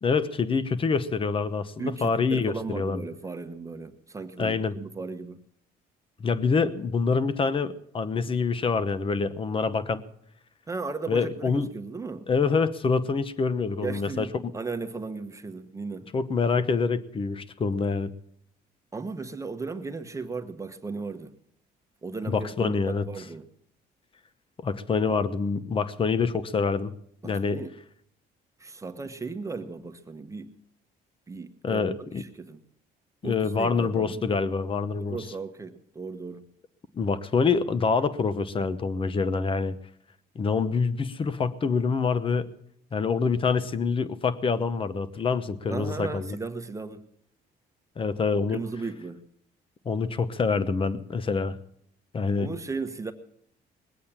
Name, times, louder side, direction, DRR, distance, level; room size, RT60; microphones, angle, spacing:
voice 1, 0.0-3.0 4.4-4.8 6.2-10.0 11.1-11.7 12.3-14.5 16.1-18.1 22.3-23.0 24.6-26.9 27.2-27.6 31.6-32.2 33.2-35.2 36.9-39.8 40.3-42.5 42.9-46.4 48.0-48.6 49.8-51.6 52.1-52.5, left 5 dB, 30° left, 15 dB, 1.0 m, -26 dB
voice 2, 1.8-5.4 10.7-12.3 13.8-16.1 18.9-21.3 22.0-23.5 27.2-27.7 28.6-30.5 31.3-32.6 33.2-34.2 35.0-36.5 45.7-47.1 48.5-49.2 52.4-53.1, right 4 dB, 20° right, 6 dB, 1.1 m, -36 dB
20.5 x 8.5 x 7.3 m, 0.70 s
cardioid pair, 110°, 17 cm